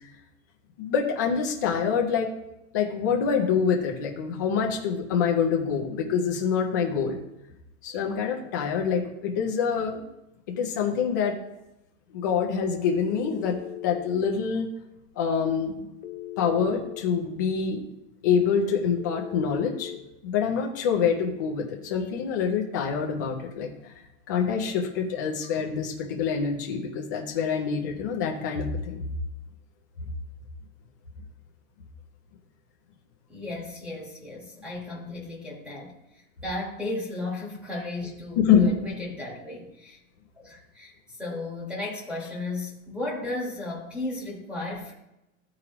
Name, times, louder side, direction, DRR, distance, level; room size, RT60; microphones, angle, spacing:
voice 1, 0.8-2.3 2.7-7.2 7.8-10.0 10.6-11.4 12.1-13.6 13.8-14.7 15.2-15.8 16.4-17.8 18.2-19.9 20.2-23.9 24.3-29.0 38.4-38.7, left 6 dB, 15° left, 0 dB, 0.3 m, -26 dB
Telephone, 13.1-14.1 16.0-17.1 19.0-20.0, left 13 dB, 55° left, 0.9 m, -39 dB
voice 2, 33.3-35.9 36.4-40.0 40.4-44.9, left 2 dB, 5° right, -6 dB, 1.2 m, -35 dB
14.0 x 4.8 x 2.9 m, 0.90 s
supercardioid pair, 175°, 40 cm